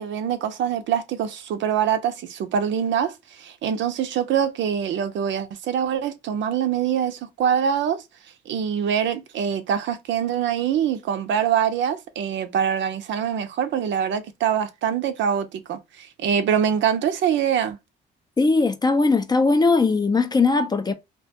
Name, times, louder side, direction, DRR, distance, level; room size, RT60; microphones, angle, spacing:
voice 1, 0.0-8.0 8.5-17.8, right 8 dB, 70° right, 0.5 m, -24 dB
voice 2, 18.4-20.9, left 3 dB, 20° left, 0.4 m, -19 dB
2.3 x 2.2 x 2.7 m
cardioid pair, 90°, 20 cm